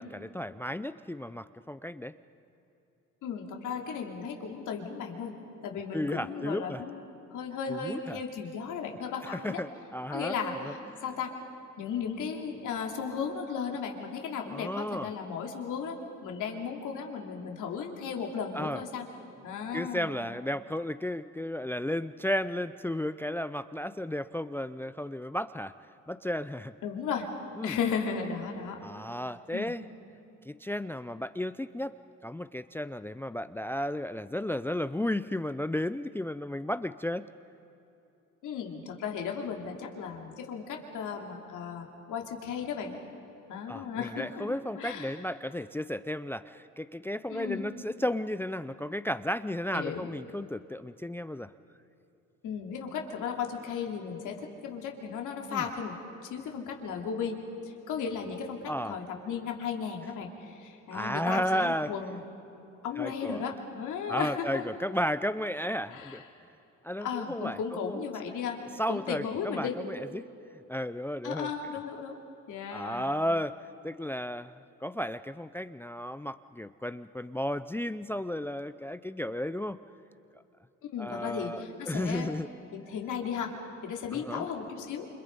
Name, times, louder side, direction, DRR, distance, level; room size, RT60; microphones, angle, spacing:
voice 1, 0.0-2.1 5.9-6.8 7.7-8.2 9.2-10.4 10.6-10.7 14.5-15.1 18.5-18.8 19.7-25.7 26.1-26.7 27.6-27.8 28.8-29.8 30.4-31.9 32.2-37.3 43.7-51.5 55.5-55.7 58.7-59.0 60.0-60.1 60.9-61.9 63.0-63.5 64.1-66.2 66.8-68.0 68.8-70.3 70.7-71.5 72.7-73.6 73.8-79.8 80.3-80.4 81.0-82.5 84.1-84.5, left 1 dB, 5° left, 13 dB, 0.5 m, -33 dB
voice 2, 3.2-5.3 5.6-7.0 7.3-9.6 10.1-11.3 11.8-19.1 19.4-20.3 26.8-27.3 27.6-28.8 29.5-29.7 38.4-43.0 43.5-44.5 44.7-45.2 47.3-47.7 49.7-50.1 52.4-56.0 56.2-57.4 57.6-62.2 62.8-64.6 65.9-66.2 67.0-68.6 68.9-69.7 71.2-72.2 72.5-73.1 80.8-82.3 82.7-83.5 83.8-85.1, left 6 dB, 85° left, 1 dB, 3.0 m, -35 dB
28.5 x 26.5 x 5.4 m, 2.9 s
cardioid pair, 90°, 30 cm